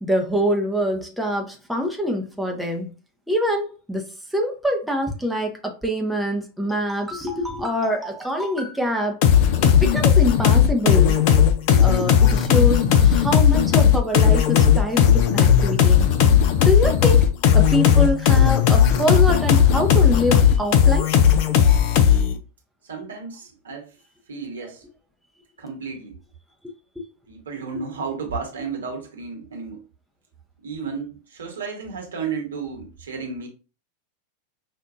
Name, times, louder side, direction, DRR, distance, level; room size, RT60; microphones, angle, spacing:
voice 1, 0.0-2.9 3.3-4.1 4.3-9.2 9.6-11.2 11.8-16.1 16.6-17.2 17.5-21.1, equal, ahead, 0.6 m, -25 dB
sound 1, 9.2-22.4, left 8 dB, 45° left, 0.5 m, -16 dB
voice 2, 22.8-23.9 24.3-24.8 25.6-26.2 27.3-29.9 30.6-33.5, right 5 dB, 65° right, 1.2 m, -33 dB
5.2 x 2.5 x 2.5 m
figure-of-eight pair, 90°, 0 cm